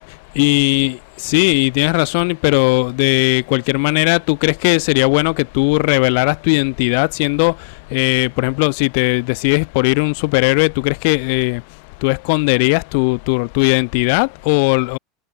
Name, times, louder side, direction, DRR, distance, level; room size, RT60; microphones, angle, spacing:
voice 1, 0.4-1.0 1.2-7.5 7.9-11.6 12.0-15.0, left 35 dB, 65° left, 7.9 m, -17 dB
supercardioid pair, 120°, 0 cm